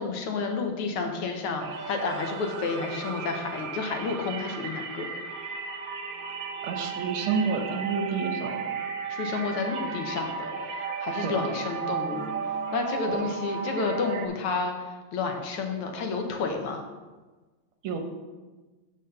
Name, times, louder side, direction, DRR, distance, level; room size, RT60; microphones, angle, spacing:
voice 1, 0.0-5.1 9.1-12.3 12.7-16.8, left 4 dB, 85° left, 3 dB, 1.9 m, -30 dB
sound 1, 1.6-14.3, right 5 dB, 90° right, 0.7 m, -34 dB
voice 2, 6.6-8.6 11.2-11.6 13.1-13.2 17.8-18.0, right 5 dB, 75° right, 5 dB, 1.8 m, -29 dB
7.9 x 4.1 x 6.6 m, 1.3 s
omnidirectional pair, 2.4 m